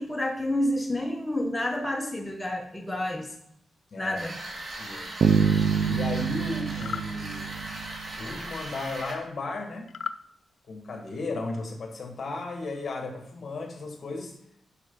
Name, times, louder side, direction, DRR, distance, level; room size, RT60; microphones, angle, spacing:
voice 1, 0.0-3.4 4.0-4.3, left 1 dB, 10° left, 1 dB, 0.9 m, -29 dB
voice 2, 3.9-4.3 4.8-5.1 5.8-7.6 8.2-9.9 10.7-14.4, left 3 dB, 50° left, 4 dB, 1.7 m, -35 dB
sound 1, 4.1-9.1, right 1 dB, 45° right, 2.2 m, -38 dB
sound 2, 5.2-8.2, right 7 dB, 65° right, 0.4 m, -25 dB
sound 3, 6.7-7.1 9.9-10.2, left 7 dB, 70° left, 0.4 m, -35 dB
11.0 x 5.5 x 5.3 m, 0.71 s
wide cardioid pair, 130°, 0 cm